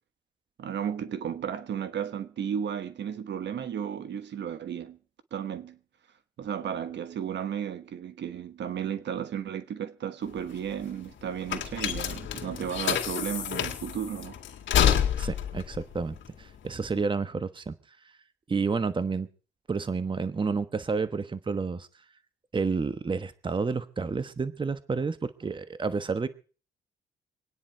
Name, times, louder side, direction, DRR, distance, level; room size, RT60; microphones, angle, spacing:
voice 1, 0.6-5.0 5.3-5.8 6.4-14.4, right 8 dB, 60° right, 1.3 m, -34 dB
sound 1, 10.2-17.0, left 9 dB, 70° left, 2.1 m, -29 dB
voice 2, 15.2-17.8 18.5-19.3 19.7-21.9 22.5-26.3, right 4 dB, 25° right, 1.1 m, -30 dB
25.5 x 9.8 x 4.6 m
cardioid pair, 90°, 20 cm